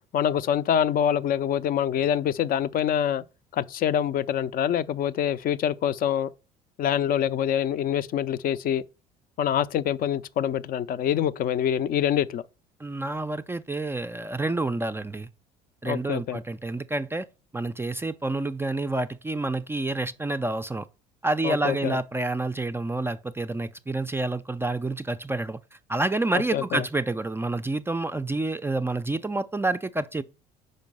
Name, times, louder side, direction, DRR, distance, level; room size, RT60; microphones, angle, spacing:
voice 1, 0.1-3.2 3.5-6.3 6.8-8.8 9.4-12.4 15.8-16.4 21.4-22.0 26.5-26.9, left 9 dB, 45° left, 0.5 m, -25 dB
voice 2, 12.8-15.3 15.8-17.3 17.5-20.9 21.2-25.6 25.9-30.2, right 2 dB, 10° right, 0.4 m, -28 dB
5.2 x 4.4 x 5.4 m
hypercardioid pair, 65°, 20 cm